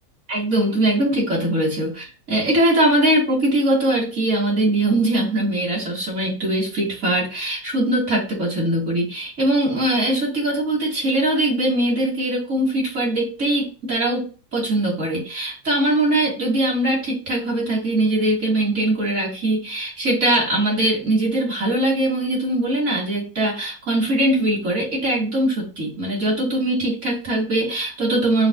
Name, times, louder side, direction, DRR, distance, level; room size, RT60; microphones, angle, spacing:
voice 1, 0.3-28.5, right 1 dB, 50° right, -4 dB, 2.0 m, -21 dB
5.7 x 2.5 x 2.3 m, 0.36 s
omnidirectional pair, 1.7 m